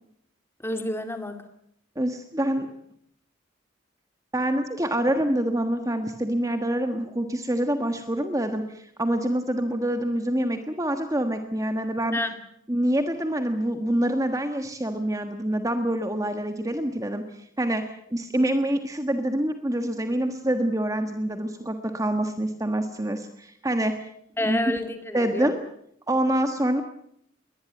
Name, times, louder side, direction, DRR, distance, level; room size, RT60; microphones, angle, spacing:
voice 1, 0.6-1.4 12.1-12.4 24.4-25.5, left 1 dB, 10° left, 7 dB, 2.4 m, -29 dB
voice 2, 1.9-2.7 4.3-12.2 12.7-24.0 24.4-24.6 25.1-25.6 26.1-26.8, right 1 dB, 15° right, 7 dB, 1.4 m, -26 dB
22.0 x 19.5 x 9.1 m, 0.72 s
head